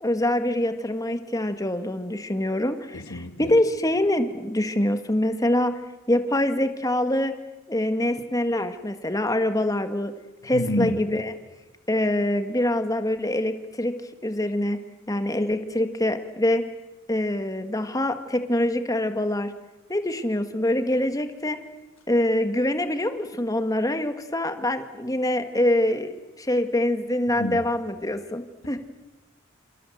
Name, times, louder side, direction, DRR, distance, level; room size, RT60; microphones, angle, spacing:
voice 1, 0.0-5.7 6.1-7.3 7.7-10.1 10.4-11.3 11.9-13.9 14.2-14.8 15.1-16.6 17.1-19.5 19.9-21.6 22.1-26.1 26.4-28.8, left 1 dB, 15° left, 8 dB, 1.7 m, -24 dB
voice 2, 2.9-3.5 10.5-11.0 27.3-27.6, left 1 dB, 70° left, 8 dB, 2.6 m, -29 dB
28.0 x 27.0 x 7.9 m, 1.1 s
head